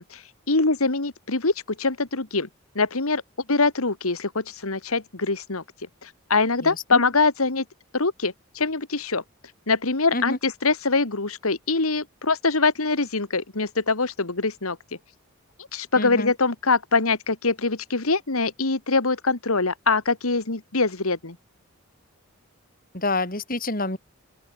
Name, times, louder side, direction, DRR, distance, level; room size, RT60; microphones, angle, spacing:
voice 1, 0.0-2.5 2.8-3.2 3.5-5.6 6.0-7.6 7.9-9.2 9.7-14.8 15.7-21.4, left 3 dB, 85° left, 2.2 m, -23 dB
voice 2, 6.6-7.0 10.1-10.4 16.0-16.3 22.9-24.0, left 2 dB, 40° left, 4.9 m, -28 dB
open air
head